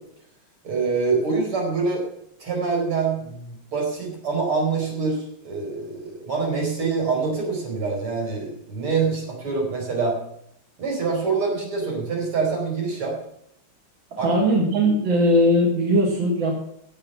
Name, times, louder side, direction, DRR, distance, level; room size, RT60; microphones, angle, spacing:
voice 1, 0.6-2.0 2.4-10.2 10.8-13.2 14.2-14.3, right 4 dB, 85° right, 0 dB, 5.4 m, -25 dB
voice 2, 14.2-16.7, equal, 65° right, 0 dB, 2.7 m, -19 dB
17.0 x 7.2 x 5.8 m, 0.71 s
omnidirectional pair, 2.3 m